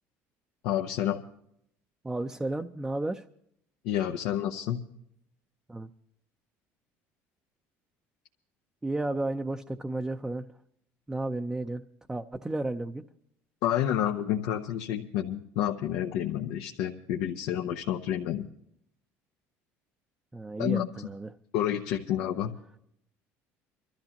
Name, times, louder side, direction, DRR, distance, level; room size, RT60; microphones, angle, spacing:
voice 1, 0.6-1.2 3.8-4.8 13.6-18.5 20.6-20.9 21.5-22.5, left 11 dB, 80° left, 3 dB, 0.8 m, -29 dB
voice 2, 2.0-3.2 5.7-5.9 8.8-10.5 11.1-11.8 12.1-13.0 20.3-21.3, right 2 dB, 10° right, 4 dB, 0.6 m, -32 dB
25.5 x 13.0 x 2.9 m, 0.73 s
cardioid pair, 125°, 6 cm